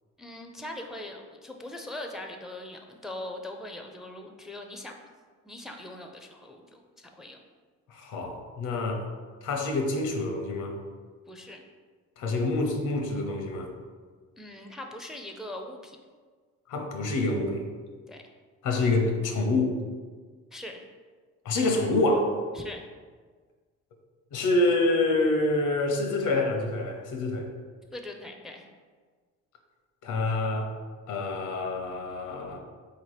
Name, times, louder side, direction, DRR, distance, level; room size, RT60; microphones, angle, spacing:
voice 1, 0.2-4.9 5.4-7.4 11.3-11.6 14.4-16.0 18.1-18.2 20.5-20.8 22.5-22.8 27.9-28.6, left 1 dB, ahead, 3 dB, 0.4 m, -41 dB
voice 2, 7.9-9.0 9.4-10.8 12.2-13.7 16.7-17.7 18.6-19.7 21.4-22.3 24.3-27.5 30.0-30.7 31.1-32.6, left 2 dB, 85° left, 3 dB, 0.8 m, -27 dB
3.8 x 2.9 x 4.8 m, 1.5 s
cardioid pair, 90°, 30 cm